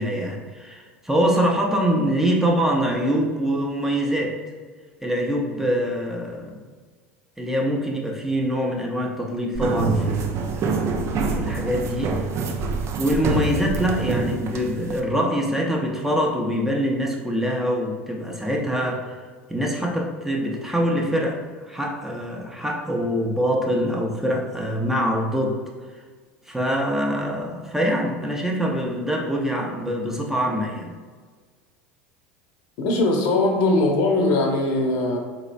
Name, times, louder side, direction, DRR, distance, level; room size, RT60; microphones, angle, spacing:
voice 1, 0.0-4.4 5.0-6.6 7.4-11.0 11.2-12.2 13.0-19.2 19.5-21.4 21.7-25.6 26.5-30.9, equal, 5° right, -1 dB, 0.7 m, -24 dB
sound 1, 9.5-15.0, right 4 dB, 45° right, 0.4 m, -26 dB
voice 2, 32.8-35.2, left 2 dB, 60° left, 1 dB, 0.7 m, -20 dB
4.0 x 3.0 x 2.5 m, 1.5 s
hypercardioid pair, 85°, 7 cm